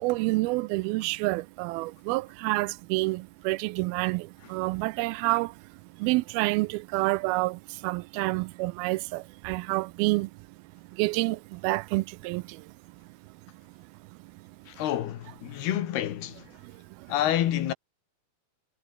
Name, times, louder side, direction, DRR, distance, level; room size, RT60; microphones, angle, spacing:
voice 1, 0.0-4.2 4.5-5.5 6.0-7.6 7.8-10.3 11.0-11.4 11.6-12.4, right 22 dB, 85° right, 2.3 m, -28 dB
voice 2, 14.7-16.5 17.1-17.7, left 12 dB, 90° left, 3.7 m, -28 dB
omnidirectional pair, 4.4 m